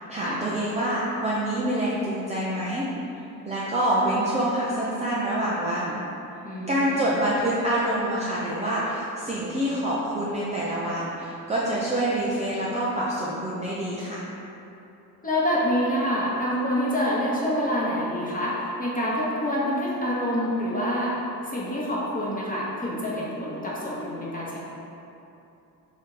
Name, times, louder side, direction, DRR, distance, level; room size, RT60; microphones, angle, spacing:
voice 1, 0.1-2.9 3.4-6.0 6.7-14.3, right 1 dB, 15° right, -7 dB, 0.6 m, -26 dB
voice 2, 6.4-7.0 15.2-21.2 21.4-24.6, equal, 15° left, -6 dB, 1.2 m, -27 dB
3.5 x 2.7 x 4.7 m, 2.9 s
figure-of-eight pair, 50°, 49 cm